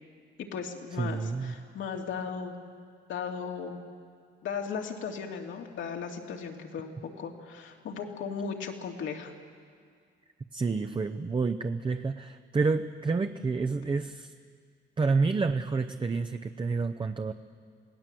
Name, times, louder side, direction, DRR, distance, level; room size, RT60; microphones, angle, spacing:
voice 1, 0.4-2.6 3.1-3.8 4.4-9.3, left 6 dB, 75° left, 2 dB, 2.5 m, -36 dB
voice 2, 1.0-1.5 10.5-14.3 15.0-17.3, right 4 dB, 25° right, 7 dB, 0.7 m, -29 dB
27.5 x 17.5 x 7.7 m, 2.1 s
cardioid pair, 90°, 20 cm